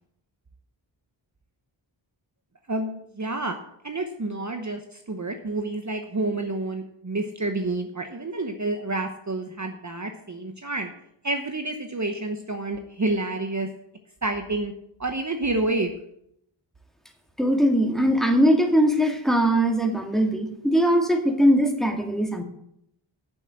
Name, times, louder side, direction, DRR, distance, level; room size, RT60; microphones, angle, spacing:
voice 1, 2.7-3.6 3.8-10.9 11.2-13.7 14.2-14.7 15.0-15.9, right 2 dB, 35° right, 5 dB, 1.0 m, -29 dB
voice 2, 17.4-22.4, equal, ahead, 3 dB, 2.0 m, -21 dB
8.3 x 7.1 x 8.6 m, 0.75 s
wide cardioid pair, 45°, 48 cm